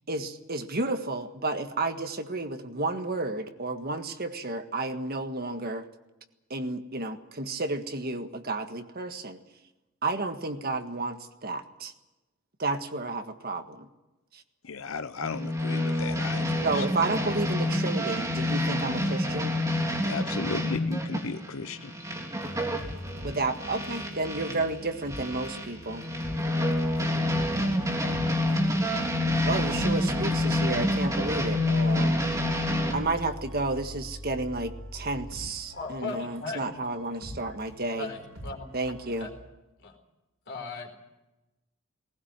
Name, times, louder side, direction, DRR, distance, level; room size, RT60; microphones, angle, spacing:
voice 1, 0.1-5.9 6.5-9.4 10.0-11.9 12.6-13.9 14.3-14.4 16.6-19.5 23.2-26.0 29.5-32.1 32.9-38.1 38.7-39.3, right 2 dB, 50° right, 7 dB, 1.7 m, -31 dB
voice 2, 14.6-16.8 20.0-21.9, left 4 dB, 90° left, 10 dB, 0.9 m, -35 dB
sound 1, 15.2-24.7 25.1-32.9, left 1 dB, 15° right, 3.3 m, -28 dB
sound 2, 22.4-39.4, equal, 85° right, 7.7 m, -43 dB
voice 3, 35.7-36.6 38.0-38.7 39.2-39.3 39.8-39.9 40.5-40.9, left 4 dB, 60° left, 4 dB, 4.4 m, -37 dB
19.5 x 19.0 x 8.9 m, 1.0 s
head